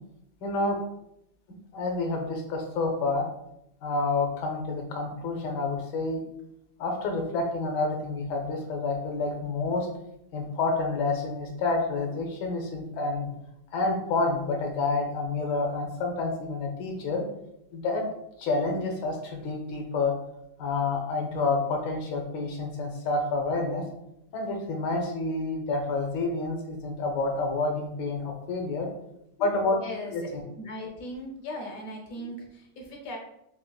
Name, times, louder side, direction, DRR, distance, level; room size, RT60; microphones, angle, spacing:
voice 1, 0.4-0.8 1.7-3.2 3.8-6.2 6.8-9.9 10.3-13.3 13.7-17.2 17.7-18.1 18.4-20.2 20.6-23.8 24.3-28.9 29.4-29.8 30.1-30.4, left 3 dB, 80° left, 2 dB, 1.4 m, -28 dB
voice 2, 29.8-30.2 30.6-33.2, left 1 dB, 65° left, 1 dB, 1.0 m, -38 dB
4.0 x 2.8 x 2.2 m, 0.79 s
omnidirectional pair, 1.9 m